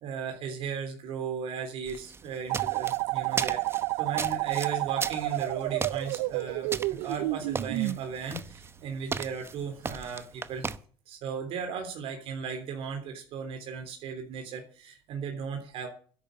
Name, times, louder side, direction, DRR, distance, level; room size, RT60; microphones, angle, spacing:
voice 1, 0.0-6.7 7.0-10.7 11.1-15.9, right 6 dB, 65° right, 3 dB, 3.3 m, -36 dB
sound 1, 1.9-10.8, right 5 dB, 25° right, 0.9 m, -37 dB
sound 2, 2.5-8.0, right 21 dB, 85° right, 0.6 m, -30 dB
11.0 x 8.6 x 8.1 m, 0.43 s
cardioid pair, 110°, 10 cm